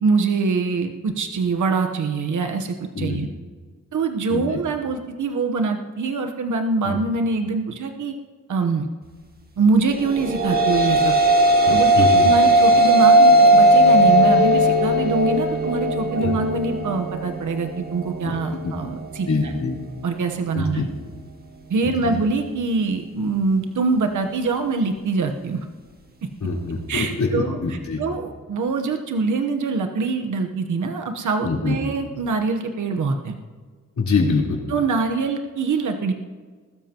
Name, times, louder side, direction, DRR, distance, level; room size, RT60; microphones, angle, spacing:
voice 1, 0.0-3.3 3.9-8.1 8.5-8.9 9.6-11.2 11.7-19.5 20.0-20.9 21.7-25.6 26.9-33.4 34.7-36.1, right 4 dB, 75° right, 4 dB, 1.1 m, -24 dB
sound 1, 10.1-18.6, right 1 dB, 30° right, 1.7 m, -17 dB
voice 2, 11.7-12.2 16.2-16.3 18.2-18.3 18.6-18.7 19.3-19.7 20.5-20.8 21.8-22.2 26.4-28.0 31.4-31.8 34.0-34.6, left 4 dB, 70° left, -3 dB, 3.9 m, -24 dB
21.0 x 13.0 x 3.0 m, 1.5 s
cardioid pair, 95°, 30 cm